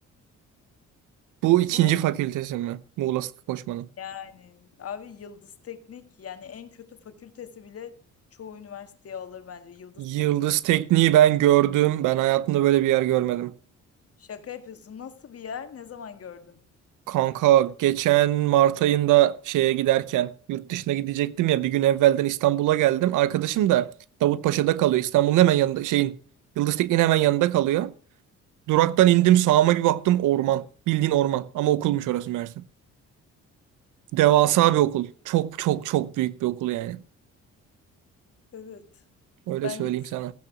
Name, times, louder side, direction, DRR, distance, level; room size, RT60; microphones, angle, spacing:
voice 1, 1.4-3.9 10.0-13.5 17.1-23.9 24.2-26.2 26.6-27.9 28.7-32.6 34.1-37.0 39.5-40.3, right 14 dB, 90° right, 0.8 m, -22 dB
voice 2, 4.0-8.0 8.3-10.5 14.2-16.6 38.5-38.9 39.6-40.1, left 8 dB, 50° left, 1.9 m, -40 dB
15.5 x 8.8 x 6.0 m
cardioid pair, 90°, 30 cm